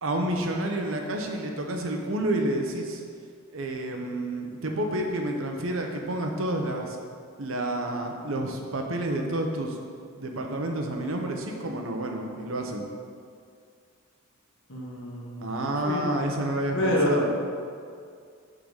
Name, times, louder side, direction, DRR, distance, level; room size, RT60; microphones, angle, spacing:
voice 1, 0.0-3.0 3.5-7.0 7.4-9.8 10.2-12.9 15.4-17.3, right 1 dB, 80° right, 2 dB, 0.9 m, -29 dB
voice 2, 14.7-16.1 16.7-17.2, left 1 dB, 65° left, -2 dB, 1.4 m, -28 dB
6.6 x 3.9 x 6.4 m, 2.2 s
head